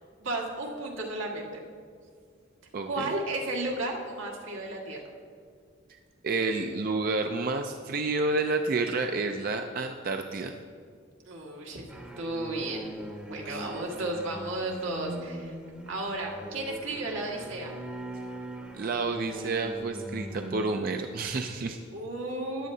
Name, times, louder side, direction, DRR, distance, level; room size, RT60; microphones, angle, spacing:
voice 1, 0.2-1.6 2.8-5.0 11.3-12.8 13.3-15.5 15.9-17.7 21.9-22.7, right 2 dB, 85° right, -2 dB, 1.7 m, -33 dB
voice 2, 2.7-3.1 6.2-10.6 13.4-13.6 18.7-21.8, right 3 dB, 45° right, 5 dB, 0.4 m, -30 dB
sound 1, 11.9-20.7, right 1 dB, 5° right, 0.7 m, -40 dB
14.0 x 10.0 x 2.7 m, 2.1 s
head